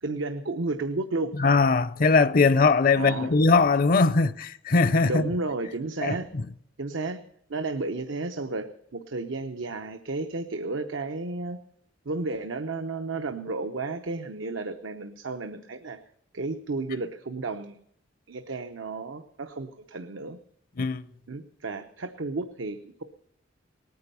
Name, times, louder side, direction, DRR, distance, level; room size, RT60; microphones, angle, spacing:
voice 1, 0.0-1.3 2.9-3.3 5.0-6.3 6.8-7.2 7.5-11.6 12.1-16.0 16.3-17.8 18.3-20.4 21.3-23.0, right 3 dB, 90° right, 0.9 m, -32 dB
voice 2, 1.4-5.3 6.0-6.4 20.8-21.0, left 4 dB, 50° left, 0.6 m, -21 dB
19.0 x 9.6 x 6.9 m
head